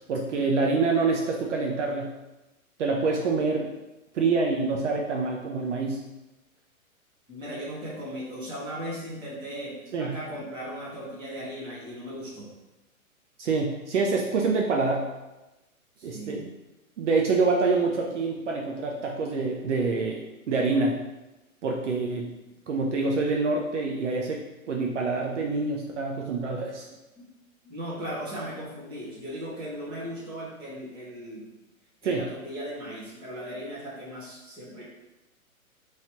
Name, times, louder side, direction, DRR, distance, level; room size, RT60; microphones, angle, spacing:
voice 1, 0.1-2.1 2.8-3.7 4.1-6.0 9.9-10.2 13.4-15.1 16.0-16.5 17.0-20.2 20.5-21.0 21.6-22.3 22.7-26.9 32.0-32.3, right 3 dB, 55° right, 0 dB, 0.6 m, -26 dB
voice 2, 7.3-12.5 16.0-16.4 22.4-22.5 27.2-27.3 27.6-31.5 32.0-34.8, equal, 10° right, -8 dB, 1.0 m, -37 dB
3.1 x 2.8 x 4.3 m, 1.0 s
hypercardioid pair, 155°, 43 cm